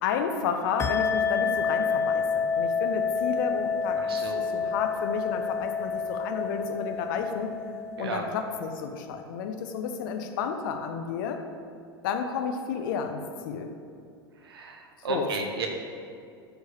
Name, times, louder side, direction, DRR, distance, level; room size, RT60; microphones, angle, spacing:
voice 1, 0.0-4.0 4.5-7.6 8.0-11.4 12.0-13.7 15.1-15.3, left 6 dB, 55° left, 6 dB, 1.0 m, -31 dB
sound 1, 0.8-8.9, left 5 dB, 20° left, 0.6 m, -29 dB
voice 2, 4.0-4.5 8.0-8.2 14.4-15.7, right 4 dB, 70° right, 2 dB, 1.6 m, -33 dB
13.0 x 4.8 x 6.9 m, 2.4 s
figure-of-eight pair, 85°, 13 cm